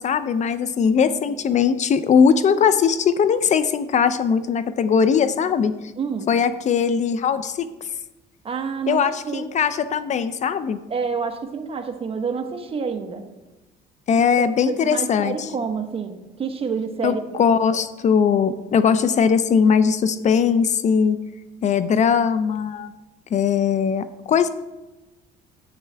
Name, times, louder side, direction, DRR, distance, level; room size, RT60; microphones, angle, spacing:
voice 1, 0.0-5.7 6.3-7.7 8.9-10.8 14.1-15.5 17.0-21.2 21.6-22.9 23.3-24.5, left 6 dB, 45° left, 13 dB, 0.5 m, -20 dB
voice 2, 6.0-6.3 8.4-9.4 10.9-13.2 14.7-17.4, right 5 dB, 35° right, 6 dB, 1.1 m, -28 dB
10.5 x 8.4 x 3.4 m, 1.1 s
cardioid pair, 110°, 17 cm